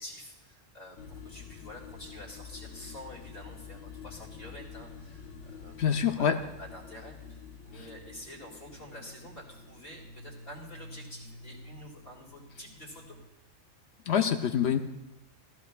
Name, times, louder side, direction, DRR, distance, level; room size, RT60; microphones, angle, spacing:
voice 1, 0.0-5.8 6.0-13.2, left 1 dB, 45° left, -2 dB, 2.6 m, -48 dB
sound 1, 1.0-13.3, left 5 dB, 85° left, 1.3 m, -48 dB
voice 2, 5.8-6.4 14.1-14.8, left 8 dB, 65° left, 7 dB, 0.7 m, -25 dB
15.0 x 15.0 x 2.4 m, 0.97 s
omnidirectional pair, 1.4 m